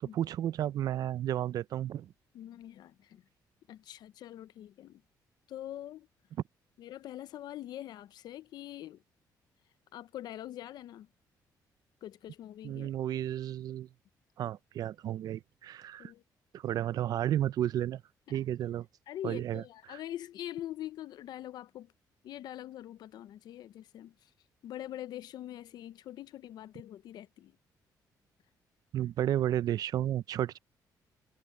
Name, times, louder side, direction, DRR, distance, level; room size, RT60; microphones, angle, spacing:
voice 1, 0.0-2.1 12.6-13.9 14.4-16.1 16.5-18.0 18.3-18.9 19.2-19.6 19.9-20.0 28.9-30.6, right 11 dB, 60° right, 0.5 m, -32 dB
voice 2, 2.3-3.2 3.7-5.0 5.5-6.1 6.8-9.0 9.9-11.1 12.0-12.9 16.0-16.2 18.3-18.4 19.1-21.9 22.2-24.3 24.6-27.6, left 12 dB, 70° left, 0.6 m, -44 dB
cardioid pair, 150°, 7 cm